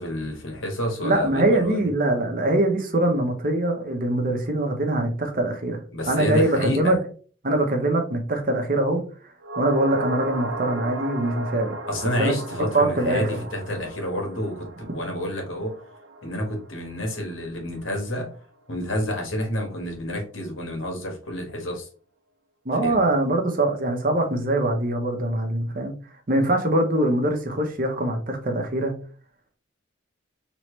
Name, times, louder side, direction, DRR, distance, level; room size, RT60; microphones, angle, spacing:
voice 1, 0.0-1.9 5.9-6.9 11.9-15.7 16.2-18.3 18.7-21.9 22.8-22.9, left 1 dB, 80° left, 2 dB, 1.5 m, -29 dB
voice 2, 1.0-5.8 6.1-7.0 7.4-9.0 9.6-11.8 12.2-12.3 12.7-13.3 22.6-25.9 26.3-28.9, right 1 dB, 45° right, 3 dB, 0.9 m, -23 dB
sound 1, 9.4-17.9 18.2-18.3, right 2 dB, 80° right, 0.7 m, -35 dB
4.8 x 3.1 x 3.1 m, 0.40 s
head